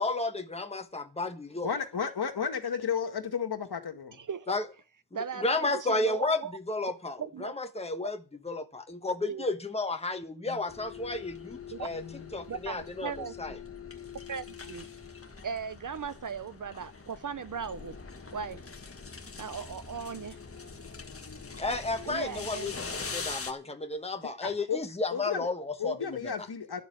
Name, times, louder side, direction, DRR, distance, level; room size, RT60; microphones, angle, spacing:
voice 1, 0.0-1.7 4.5-4.6 5.4-8.2 8.4-12.0 12.3-13.1 13.4-13.5 21.6-26.3, left 2 dB, 15° left, 1.2 m, -32 dB
voice 2, 1.6-4.2 10.5-10.6 11.9-12.3 24.2-25.5 25.8-26.8, left 7 dB, 60° left, 2.1 m, -33 dB
voice 3, 4.2-4.6 5.1-6.5 7.3-7.5 8.0-8.1 9.3-9.5 11.7-11.9 12.5-13.6 14.3-14.9 15.4-18.0 18.3-18.6 19.4-20.4 22.1-22.7, right 6 dB, 50° right, 0.6 m, -38 dB
sound 1, 10.7-23.5, left 5 dB, 30° left, 1.5 m, -43 dB
11.5 x 7.2 x 9.7 m
wide cardioid pair, 170°, 42 cm